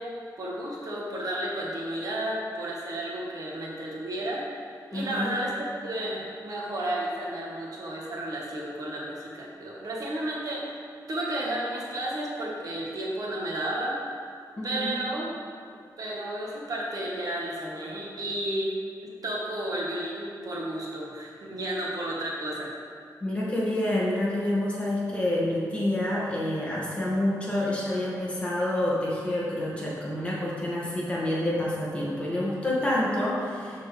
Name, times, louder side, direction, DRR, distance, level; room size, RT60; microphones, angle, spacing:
voice 1, 0.0-4.4 4.9-5.5 5.8-14.0 14.6-15.3 16.0-18.7 19.0-22.7, right 1 dB, 55° right, -3 dB, 1.2 m, -32 dB
voice 2, 4.9-5.3 14.6-14.9 23.2-33.9, left 1 dB, 15° left, -6 dB, 1.7 m, -28 dB
12.0 x 4.4 x 3.2 m, 2.3 s
wide cardioid pair, 140°, 7 cm